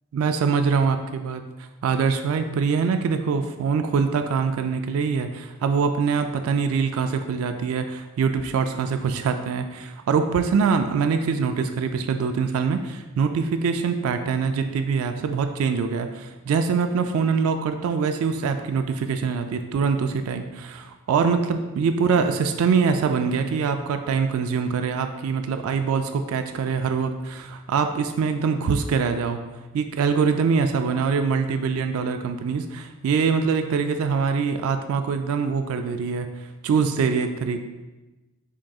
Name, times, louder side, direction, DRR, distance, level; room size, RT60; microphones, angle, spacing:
voice 1, 0.1-1.4 1.8-29.4 29.7-36.3 36.6-37.6, right 5 dB, 75° right, 8 dB, 0.3 m, -24 dB
6.1 x 3.7 x 2.3 m, 1.1 s
head